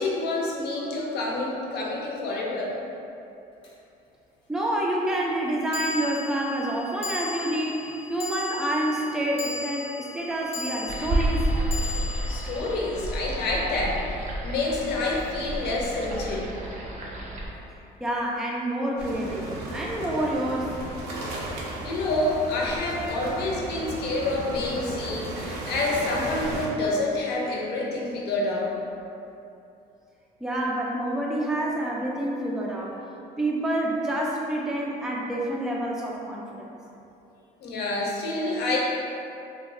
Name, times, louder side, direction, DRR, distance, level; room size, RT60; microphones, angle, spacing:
voice 1, 0.0-2.7 12.3-16.5 21.8-28.7 37.6-38.8, left 2 dB, 75° left, -3 dB, 0.6 m, -28 dB
sound 1, 3.6-3.7 5.7-14.2, left 4 dB, 35° left, 0.6 m, -38 dB
voice 2, 4.5-11.5 18.0-20.8 30.4-33.0 33.4-36.8, right 1 dB, 5° right, -3 dB, 0.3 m, -28 dB
sound 2, 10.9-17.5, right 1 dB, 45° right, 0.6 m, -30 dB
sound 3, 19.0-26.7, right 1 dB, 90° right, 0.6 m, -35 dB
3.0 x 2.1 x 3.6 m, 2.7 s
cardioid pair, 110°, 17 cm